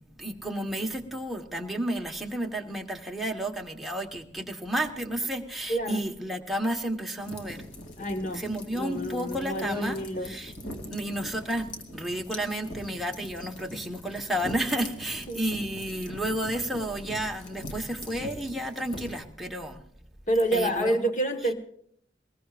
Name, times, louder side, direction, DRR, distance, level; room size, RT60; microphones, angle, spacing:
voice 1, 0.2-7.6 8.3-10.5 10.9-19.8 20.5-21.0, right 1 dB, ahead, 0 dB, 1.3 m, -32 dB
voice 2, 5.7-6.0 8.0-8.4 8.7-10.3 15.3-15.4 20.3-21.5, right 1 dB, 40° left, 7 dB, 1.5 m, -28 dB
sound 1, 7.2-19.2, left 1 dB, 85° left, 2.6 m, -42 dB
21.5 x 20.5 x 2.5 m, 0.65 s
head